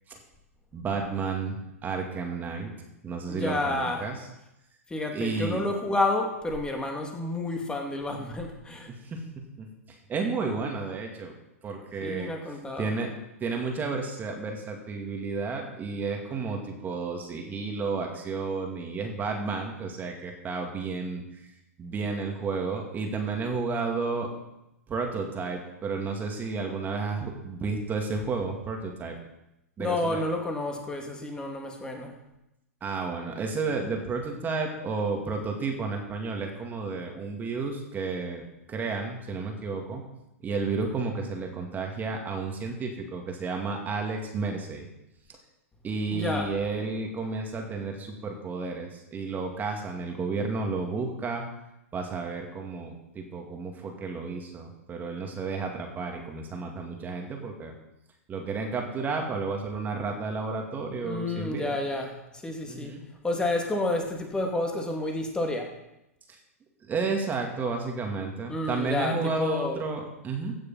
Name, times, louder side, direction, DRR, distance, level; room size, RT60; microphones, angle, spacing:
voice 1, 0.7-2.7 3.0-4.2 5.1-5.6 8.9-9.3 9.6-9.7 10.1-11.3 11.6-12.3 12.8-13.1 13.4-21.5 21.8-24.3 24.9-29.2 29.8-30.2 32.8-40.0 40.4-44.9 45.3-45.4 45.8-51.4 51.9-57.7 58.3-61.8 62.7-63.1 66.3-66.4 66.8-70.6, right 4 dB, 20° right, 2 dB, 2.4 m, -32 dB
voice 2, 3.3-4.1 4.9-8.9 12.0-12.9 29.8-32.2 46.1-46.5 61.0-63.0 63.2-65.7 68.5-69.8, left 2 dB, 10° left, 2 dB, 2.4 m, -30 dB
16.0 x 6.6 x 5.7 m, 0.89 s
hypercardioid pair, 115°, 8 cm